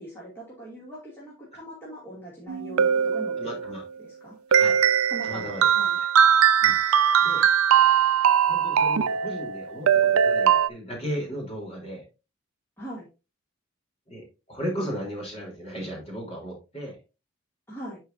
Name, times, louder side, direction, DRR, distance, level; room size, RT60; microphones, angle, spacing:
voice 1, 0.0-3.3 4.0-4.3 5.1-6.0 12.8-13.1 17.7-18.0, right 1 dB, 10° left, -7 dB, 2.5 m, -41 dB
sound 1, 2.5-3.8 4.5-10.7, right 8 dB, 85° right, 0.5 m, -21 dB
voice 2, 3.4-3.8 4.5-4.8 5.2-5.9 6.6-6.7 7.2-7.5 8.5-12.0 14.1-17.0, equal, 30° left, -2 dB, 3.4 m, -35 dB
11.5 x 4.8 x 2.6 m, 0.29 s
head